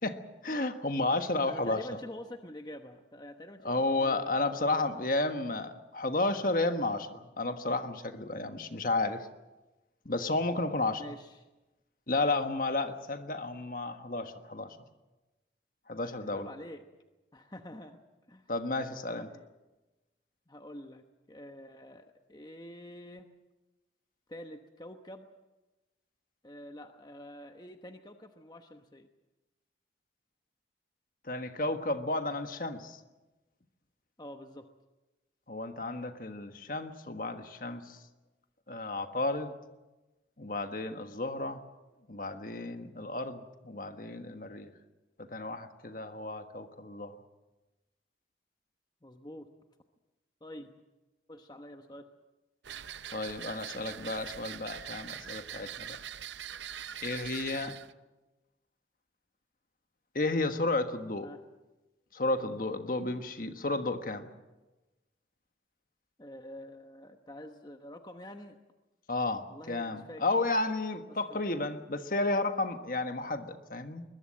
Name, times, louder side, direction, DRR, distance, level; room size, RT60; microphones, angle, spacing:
voice 1, 0.0-1.8 3.6-9.3 10.0-11.0 12.1-14.8 15.9-16.5 18.5-19.3 31.2-33.0 35.5-38.0 38.7-39.5 40.4-41.6 42.1-44.7 45.2-47.2 53.1-56.0 57.0-57.7 60.1-61.3 62.1-64.3 69.1-74.0, left 2 dB, 50° left, 8 dB, 1.4 m, -32 dB
voice 2, 1.4-4.9 11.0-11.4 16.2-16.8 17.3-18.0 18.3-18.5 19.2-19.5 20.5-23.3 24.3-25.3 26.4-29.1 34.2-34.7 49.0-49.5 50.4-50.7 51.3-52.1 57.5-57.8 61.2-61.4 66.2-68.6 69.5-70.2 71.1-71.4, left 1 dB, 25° left, 6 dB, 1.0 m, -47 dB
sound 1, 52.6-57.9, right 9 dB, 85° right, 0.7 m, -43 dB
21.5 x 21.0 x 7.7 m, 1.1 s
head